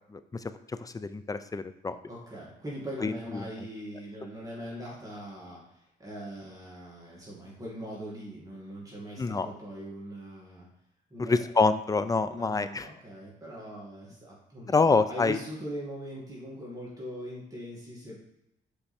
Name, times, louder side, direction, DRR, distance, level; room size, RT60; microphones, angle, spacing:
voice 1, 0.8-2.0 3.0-3.5 9.2-9.5 11.2-12.9 14.7-15.4, left 4 dB, 20° left, 12 dB, 0.4 m, -26 dB
voice 2, 2.1-10.7 11.1-11.5 12.3-18.3, equal, 15° right, -5 dB, 2.4 m, -41 dB
5.7 x 4.7 x 4.3 m, 0.83 s
cardioid pair, 90°, 20 cm